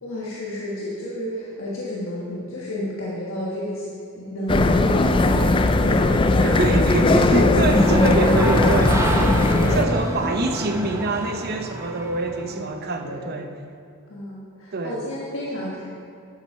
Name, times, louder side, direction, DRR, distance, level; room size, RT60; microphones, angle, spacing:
voice 1, 0.0-3.9 4.1-7.5 7.8-8.8 9.2-11.4 12.5-12.6 13.0-13.3 14.1-15.8, left 1 dB, 65° left, -6 dB, 1.4 m, -30 dB
sound 1, 4.5-9.8, left 2 dB, 25° left, 0.4 m, -18 dB
voice 2, 6.4-8.9 9.7-13.5 14.7-15.0, right 3 dB, 45° right, 6 dB, 0.7 m, -25 dB
sound 2, 7.7-12.8, right 1 dB, 15° right, 0.7 m, -28 dB
12.0 x 7.3 x 4.6 m, 2.3 s
head